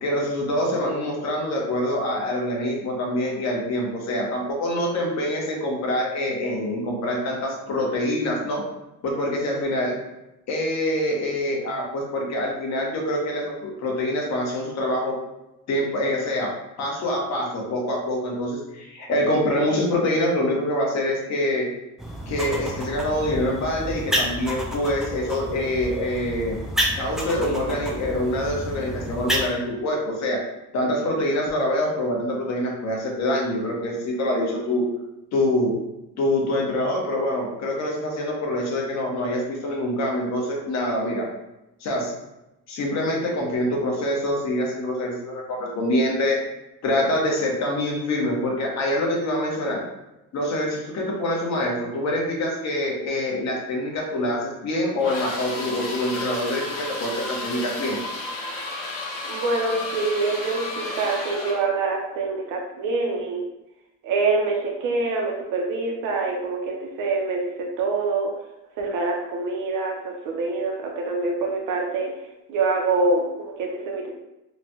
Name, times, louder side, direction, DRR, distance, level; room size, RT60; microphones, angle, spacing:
voice 1, 0.0-8.6 9.0-9.9 10.5-15.1 15.7-16.5 16.8-21.7 22.3-26.6 27.0-30.4 30.7-34.8 35.3-35.7 36.2-41.3 41.8-42.1 42.7-46.4 46.8-49.8 50.3-58.0, left 1 dB, 55° left, -1 dB, 0.9 m, -25 dB
sound 1, 22.0-29.5, equal, ahead, 0.3 m, -30 dB
sound 2, 55.0-61.7, left 2 dB, 85° left, 1.1 m, -32 dB
voice 2, 59.3-63.4 64.0-68.3 68.8-72.1 72.5-74.1, right 3 dB, 70° right, 0 dB, 0.6 m, -25 dB
3.1 x 2.2 x 2.6 m, 0.96 s
cardioid pair, 125°, 32 cm